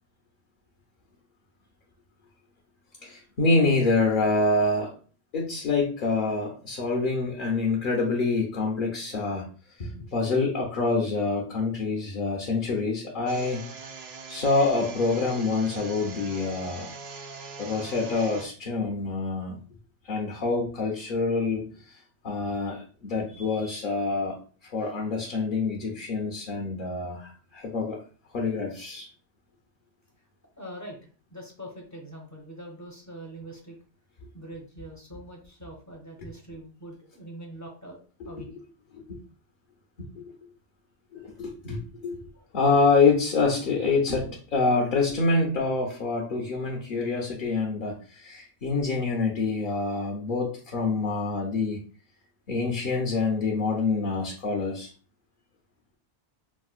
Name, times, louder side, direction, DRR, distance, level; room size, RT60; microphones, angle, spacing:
voice 1, 3.0-5.0 5.3-9.5 9.8-13.6 14.3-16.9 17.6-19.6 20.0-22.0 22.2-24.4 24.6-28.0 28.3-29.1 38.2-38.3 38.9-39.0 40.0-40.2 41.1-42.3 42.5-51.8 52.5-54.9, left 3 dB, 55° left, 0 dB, 0.7 m, -26 dB
sound 1, 13.3-18.5, right 4 dB, 70° right, 0.8 m, -41 dB
voice 2, 30.6-31.0 31.3-33.8 34.3-38.0 38.2-38.5 42.3-42.4, right 1 dB, 20° left, 0 dB, 0.5 m, -43 dB
4.4 x 2.0 x 2.4 m, 0.40 s
omnidirectional pair, 1.1 m